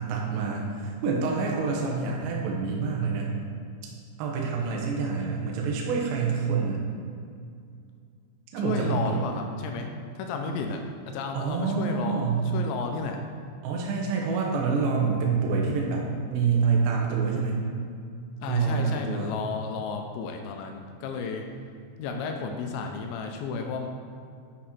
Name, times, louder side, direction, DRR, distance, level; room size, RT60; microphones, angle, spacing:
voice 1, 0.0-3.3 4.2-6.8 8.5-9.4 11.3-12.4 13.6-16.1 16.3-17.6 18.5-19.3, right 5 dB, 75° right, -1 dB, 3.0 m, -27 dB
voice 2, 8.6-9.9 10.2-13.2 18.4-21.4 22.0-23.9, left 4 dB, 85° left, 3 dB, 2.9 m, -33 dB
8.6 x 6.3 x 4.3 m, 2.3 s
omnidirectional pair, 5.4 m